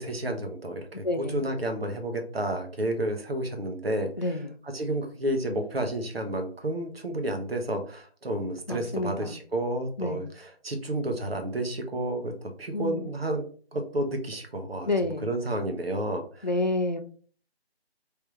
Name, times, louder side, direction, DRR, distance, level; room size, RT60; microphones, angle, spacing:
voice 1, 0.0-4.4 4.6-14.9 15.2-16.5, right 1 dB, 65° right, 5 dB, 1.1 m, -31 dB
voice 2, 1.0-1.5 4.2-4.6 8.7-9.4 10.0-10.3 12.7-13.1 14.9-15.3 16.4-17.0, left 2 dB, 45° left, 7 dB, 0.4 m, -29 dB
3.4 x 3.3 x 3.0 m, 0.43 s
figure-of-eight pair, 165°, 32 cm